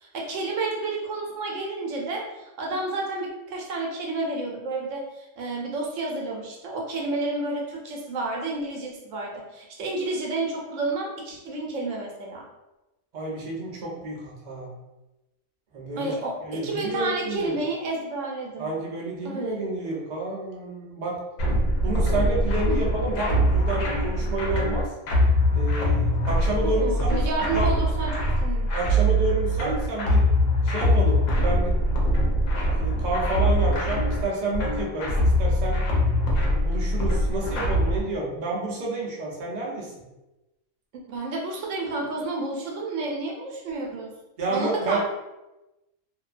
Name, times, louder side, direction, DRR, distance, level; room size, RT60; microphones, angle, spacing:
voice 1, 0.0-12.4 16.0-18.7 19.2-19.6 22.7-22.8 26.6-28.7 41.1-44.1 44.5-45.0, right 2 dB, 75° right, -1 dB, 0.9 m, -30 dB
voice 2, 13.1-14.7 15.7-16.1 16.4-17.5 18.6-21.2 21.8-24.9 25.5-27.2 27.5-27.7 28.7-30.2 30.6-31.7 32.8-35.8 36.5-39.9 44.4-45.0, right 2 dB, 55° right, -3 dB, 0.5 m, -30 dB
sound 1, 21.4-38.0, equal, 80° left, 1.0 m, -23 dB
2.6 x 2.1 x 2.4 m, 1.0 s
omnidirectional pair, 1.3 m